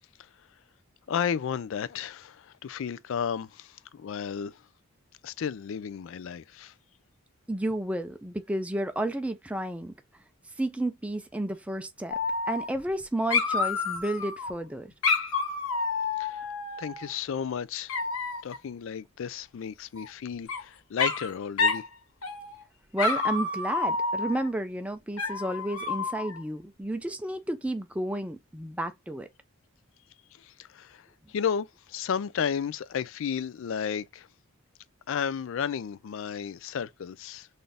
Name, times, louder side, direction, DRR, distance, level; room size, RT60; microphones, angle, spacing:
voice 1, 1.1-4.6 5.2-6.7 16.2-16.4 16.8-18.0 18.4-21.9 30.3-34.3 35.1-37.5, left 7 dB, 65° left, 0.4 m, -33 dB
voice 2, 7.5-9.9 10.6-12.2 12.5-14.9 22.9-29.3, right 1 dB, 5° right, 0.4 m, -31 dB
Dog, 12.1-13.0 13.3-14.5 15.0-17.1 17.9-18.6 20.0-20.6 21.0-21.3 21.6-21.9 22.2-22.6 23.0-24.5 25.2-26.4, left 4 dB, 85° left, 1.2 m, -29 dB
4.0 x 2.6 x 3.3 m
head